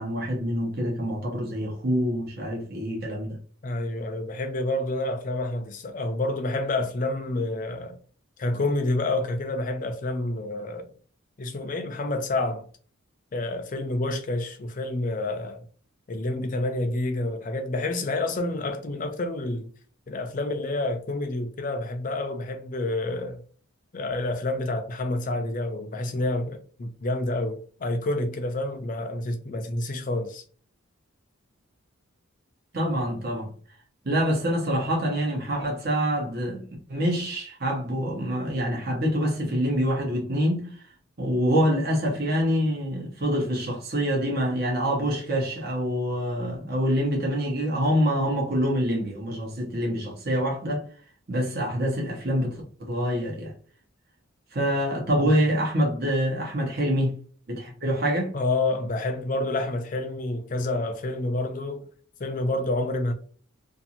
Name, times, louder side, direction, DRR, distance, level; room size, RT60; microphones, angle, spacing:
voice 1, 0.0-3.4 32.7-33.5 34.0-36.6 36.9-40.7 41.2-50.8 51.3-53.5 54.5-57.1 57.5-58.3, equal, 50° right, 0.9 m, -26 dB
voice 2, 3.6-8.0 8.4-10.8 11.4-12.7 13.3-15.6 16.1-19.7 20.1-23.4 23.9-30.4 55.2-55.3 58.3-61.9 62.2-63.1, left 2 dB, 40° left, 0.4 m, -28 dB
2.6 x 2.5 x 2.8 m
head